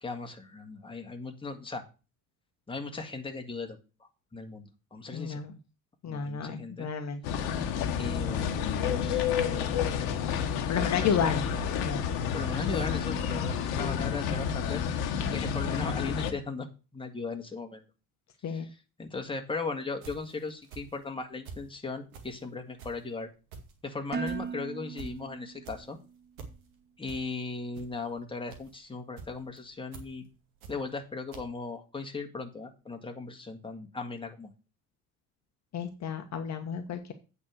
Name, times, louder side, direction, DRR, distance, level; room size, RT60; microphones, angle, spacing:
voice 1, 0.0-1.8 2.7-5.4 6.1-6.9 7.9-9.8 10.8-11.6 12.3-14.8 15.3-16.7 16.9-17.8 18.5-23.3 23.8-26.0 27.0-30.2 30.7-34.5, left 3 dB, 10° left, 3 dB, 2.0 m, -38 dB
voice 2, 5.1-5.5 6.0-7.2 10.7-11.4 11.8-12.0 13.8-13.9 18.4-18.7 35.7-37.1, left 7 dB, 40° left, 6 dB, 1.4 m, -31 dB
sound 1, 7.2-16.3, left 8 dB, 60° left, 1.4 m, -30 dB
sound 2, 19.9-21.7 22.1-31.1 31.3-31.4, right 5 dB, 75° right, 2.1 m, -47 dB
Dishes pots and pans, 24.1-26.2, right 6 dB, 25° right, 0.9 m, -38 dB
8.6 x 5.5 x 6.5 m, 0.32 s
hypercardioid pair, 65°, 42 cm